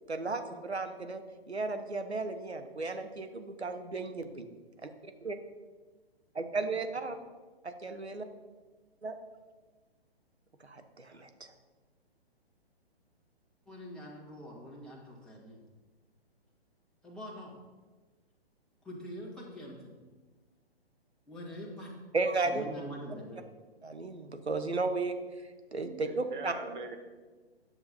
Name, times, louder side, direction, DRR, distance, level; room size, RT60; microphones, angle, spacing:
voice 1, 0.1-1.2 1.5-4.5 4.8-5.4 6.3-7.2 7.6-8.3 9.0-9.2 10.6-11.5 22.1-22.6 23.8-25.2 25.7-26.5, right 3 dB, 90° right, 7 dB, 1.0 m, -34 dB
voice 2, 13.7-15.6 17.0-17.5 18.8-20.0 21.3-21.9 22.4-23.4, equal, ahead, -5 dB, 1.6 m, -44 dB
voice 3, 25.8-27.0, right 3 dB, 50° right, 4 dB, 1.3 m, -42 dB
10.0 x 6.9 x 4.3 m, 1.3 s
figure-of-eight pair, 125°, 32 cm